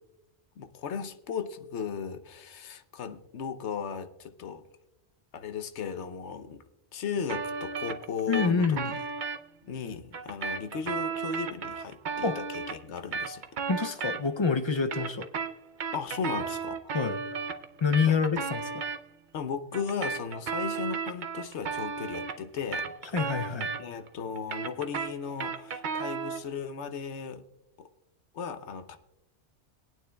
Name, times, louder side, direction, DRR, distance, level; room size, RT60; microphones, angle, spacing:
voice 1, 0.6-4.6 5.3-6.6 6.9-8.8 9.6-13.4 15.9-16.9 18.1-18.5 19.3-22.9 23.8-27.4 27.8-27.9 28.3-29.0, left 6 dB, 80° left, 9 dB, 1.1 m, -36 dB
sound 1, 7.3-9.4 10.1-14.5 14.8-19.0 19.7-24.1 24.4-26.5, right 5 dB, 50° right, 0.7 m, -34 dB
voice 2, 8.3-9.0 12.2-12.4 13.7-15.3 16.9-17.2 17.8-18.7 23.1-23.7, left 5 dB, 45° left, 9 dB, 0.4 m, -27 dB
22.0 x 9.2 x 2.3 m, 0.89 s
omnidirectional pair, 1.1 m